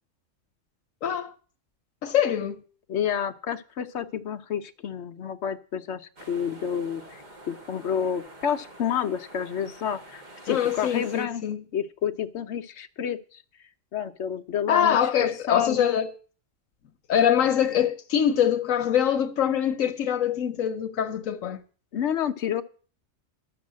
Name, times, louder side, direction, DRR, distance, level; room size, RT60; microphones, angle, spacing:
voice 1, 1.0-1.3 2.0-2.6 10.5-11.6 14.7-16.1 17.1-21.6, left 9 dB, 85° left, 1.2 m, -24 dB
voice 2, 2.9-11.4 11.7-13.4 13.9-16.0 21.9-22.6, left 8 dB, 65° left, 1.0 m, -30 dB
sound 1, 6.2-11.3, right 1 dB, 35° right, 1.3 m, -47 dB
12.0 x 6.8 x 7.4 m
omnidirectional pair, 1.3 m